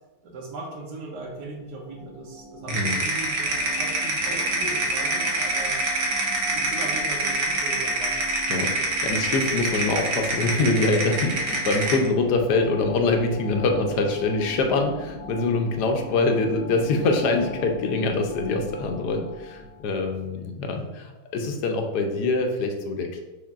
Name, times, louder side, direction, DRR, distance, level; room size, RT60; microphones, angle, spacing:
voice 1, 0.2-5.8 6.4-8.1 14.0-14.9, right 2 dB, 85° right, 0 dB, 1.5 m, -38 dB
sound 1, 1.2-20.1, right 1 dB, 35° right, 0.7 m, -41 dB
sound 2, 2.7-12.1, right 2 dB, 70° right, 1.4 m, -26 dB
voice 2, 8.5-23.2, left 3 dB, 85° left, 4 dB, 1.2 m, -24 dB
6.2 x 3.3 x 2.4 m, 1.1 s
omnidirectional pair, 1.7 m